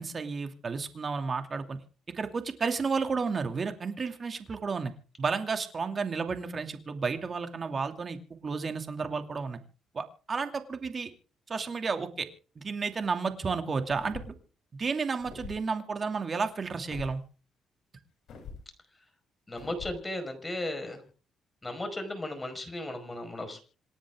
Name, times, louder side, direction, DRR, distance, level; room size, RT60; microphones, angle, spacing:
voice 1, 0.0-1.8 2.1-4.9 5.2-9.6 9.9-11.1 11.5-12.3 12.6-14.3 14.8-17.2, right 5 dB, 40° right, 7 dB, 2.6 m, -32 dB
sound 1, 13.9-14.4 15.2-15.6 16.9-17.2 18.3-18.6 19.6-20.0, left 5 dB, 70° left, 7.8 m, -43 dB
voice 2, 19.5-21.0 21.6-23.6, left 1 dB, 20° left, 7 dB, 5.1 m, -35 dB
27.5 x 9.9 x 3.7 m, 0.39 s
cardioid pair, 90°, 0 cm